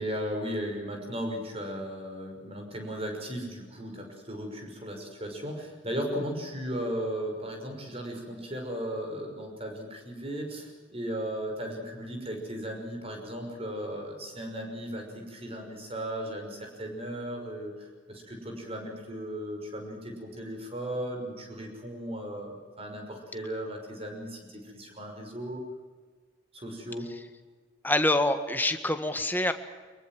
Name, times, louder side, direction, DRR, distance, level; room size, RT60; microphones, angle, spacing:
voice 1, 0.0-25.6 26.5-27.1, equal, 30° right, 3 dB, 6.0 m, -36 dB
voice 2, 27.8-29.5, left 1 dB, 10° left, 8 dB, 1.6 m, -26 dB
24.5 x 22.5 x 7.6 m, 1.4 s
head